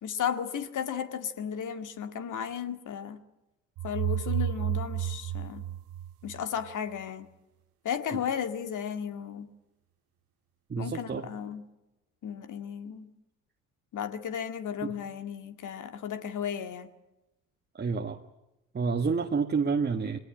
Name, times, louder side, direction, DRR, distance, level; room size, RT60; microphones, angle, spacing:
voice 1, 0.0-3.2 3.8-5.6 6.2-7.3 7.8-9.5 10.8-11.6 12.2-13.1 13.9-16.9, left 8 dB, 45° left, 9 dB, 2.0 m, -34 dB
sound 1, 3.8-6.7, right 11 dB, 55° right, 1.1 m, -31 dB
voice 2, 10.7-11.3 14.8-14.9 17.8-18.2 18.7-20.2, right 5 dB, 25° right, 4 dB, 1.5 m, -29 dB
22.5 x 18.5 x 9.6 m, 0.95 s
hypercardioid pair, 60°, 41 cm